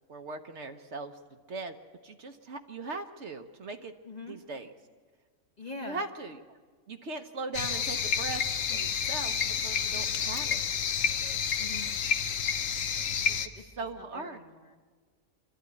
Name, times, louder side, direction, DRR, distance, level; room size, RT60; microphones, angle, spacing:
voice 1, 0.1-1.2 1.5-1.7 2.0-3.9 4.3-4.7 5.8-6.6 6.9-8.4 8.7-10.6 13.6-14.4, right 3 dB, 55° right, 7 dB, 1.2 m, -39 dB
voice 2, 4.0-4.4 5.6-6.1 11.6-11.9 13.3-13.6 14.0-14.8, left 3 dB, 30° left, 3 dB, 1.2 m, -44 dB
sound 1, 7.5-13.5, left 7 dB, 65° left, 1.2 m, -30 dB
25.0 x 13.0 x 9.6 m, 1.5 s
omnidirectional pair, 1.5 m